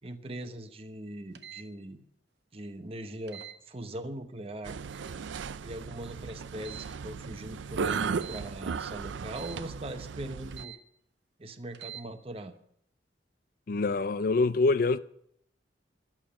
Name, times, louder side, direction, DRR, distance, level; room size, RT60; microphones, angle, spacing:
voice 1, 0.0-2.0 2.5-4.8 5.6-10.7 11.4-12.5, right 1 dB, 30° right, 1.0 m, -41 dB
sound 1, 1.3-1.7 3.3-3.6 4.8-5.1 6.6-7.0 8.1-8.5 9.3-9.6 10.5-10.8 11.7-12.0, right 10 dB, 70° right, 1.1 m, -45 dB
sound 2, 4.6-10.6, right 6 dB, 85° right, 0.4 m, -36 dB
voice 2, 13.7-15.0, left 3 dB, 50° left, 0.4 m, -25 dB
11.5 x 7.3 x 10.0 m
head